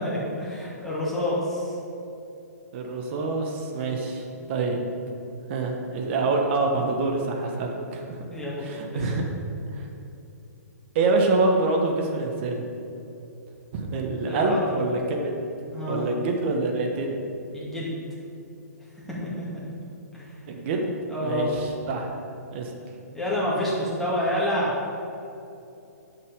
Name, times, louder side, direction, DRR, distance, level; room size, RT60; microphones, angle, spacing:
voice 1, 0.0-1.8 8.3-9.1 14.3-14.6 15.7-16.1 17.5-18.0 18.8-19.5 20.1-20.4 21.1-21.5 23.1-24.7, left 1 dB, 5° left, -8 dB, 2.3 m, -28 dB
voice 2, 2.7-4.2 4.5-4.8 5.5-8.2 8.6-9.2 9.7-9.9 10.9-12.6 13.7-15.3 15.9-17.2 20.5-20.9 21.2-22.1 22.5-22.7, right 3 dB, 40° right, 2 dB, 1.4 m, -26 dB
9.7 x 5.8 x 5.2 m, 2.8 s
hypercardioid pair, 130°, 9 cm